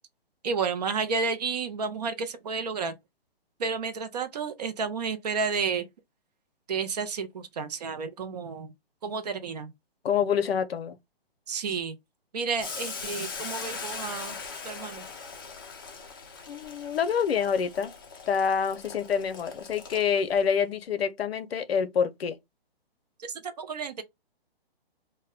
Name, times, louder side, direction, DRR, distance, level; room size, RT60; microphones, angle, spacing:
voice 1, 0.4-2.9 3.6-5.9 6.7-8.7 9.0-9.7 11.5-12.0 12.3-14.4 14.6-15.1 23.2-24.0, right 5 dB, 45° right, 0.4 m, -31 dB
voice 2, 10.0-11.0 16.5-17.9 18.3-22.4, left 7 dB, 80° left, 0.6 m, -27 dB
Boiling, 12.6-20.4, left 5 dB, 25° left, 0.3 m, -40 dB
2.1 x 2.0 x 3.4 m
hypercardioid pair, 145°, 30 cm